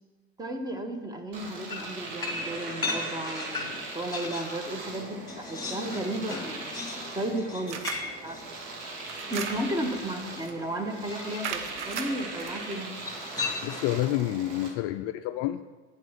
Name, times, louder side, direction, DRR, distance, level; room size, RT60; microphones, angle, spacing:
voice 1, 0.4-6.9 7.1-8.4 9.3-13.0, right 1 dB, 10° right, 6 dB, 1.3 m, -34 dB
Domestic sounds home sounds, 1.3-14.7, right 3 dB, 55° right, 2.1 m, -40 dB
sound 1, 1.7-4.6 5.0-10.0 11.1-11.7 13.0-14.0, left 3 dB, 10° left, 2.5 m, -37 dB
sound 2, 7.7-8.1 9.0-9.9 10.4-10.6 11.4-12.5, right 7 dB, 80° right, 0.8 m, -36 dB
voice 2, 13.6-15.6, left 14 dB, 45° left, 10 dB, 0.4 m, -29 dB
9.1 x 7.4 x 5.8 m, 1.3 s
hypercardioid pair, 85°, 34 cm